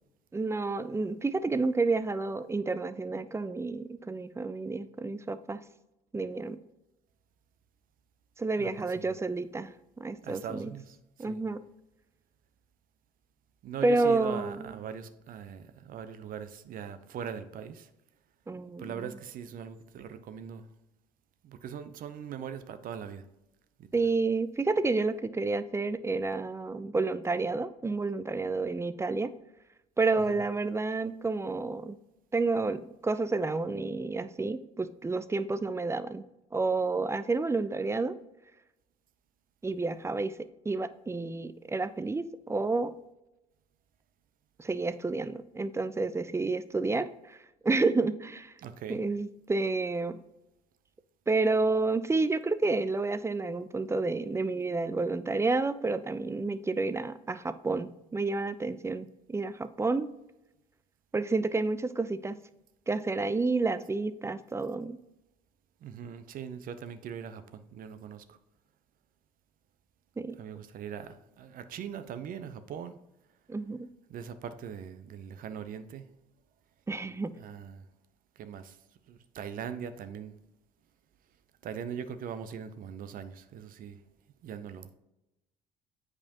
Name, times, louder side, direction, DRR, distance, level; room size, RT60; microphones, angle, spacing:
voice 1, 0.3-5.6 6.1-6.6 8.4-9.7 10.0-10.7 11.2-11.6 13.8-14.7 18.5-18.9 23.9-29.3 30.0-32.0 32.3-36.2 36.5-38.2 39.6-42.9 44.6-47.4 47.6-48.5 48.9-50.2 51.3-60.1 61.1-62.4 62.9-65.0 70.2-70.4 73.5-73.9 76.9-77.3, right 3 dB, 15° right, 13 dB, 0.5 m, -30 dB
voice 2, 8.6-9.2 10.2-11.4 13.6-17.9 18.8-20.7 21.4-23.2 23.8-23.9 30.2-30.4 48.6-49.0 65.8-68.4 70.4-73.0 74.1-76.1 77.3-77.9 78.4-78.8 79.1-80.4 81.6-84.0 84.4-84.9, right 8 dB, 55° right, 11 dB, 0.7 m, -41 dB
8.5 x 4.9 x 2.9 m, 0.93 s
hypercardioid pair, 60°, 18 cm